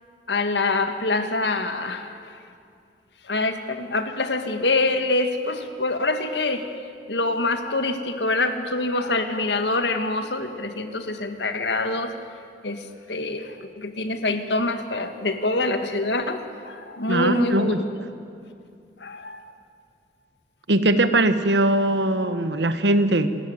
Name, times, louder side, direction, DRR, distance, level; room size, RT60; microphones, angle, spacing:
voice 1, 0.3-2.3 3.3-6.7 7.1-12.1 12.6-12.8 13.1-17.8 19.0-19.4, left 2 dB, 75° left, 7 dB, 1.8 m, -25 dB
voice 2, 17.1-17.8 20.7-23.4, right 1 dB, 80° right, 11 dB, 1.3 m, -21 dB
28.0 x 13.5 x 9.7 m, 2.5 s
head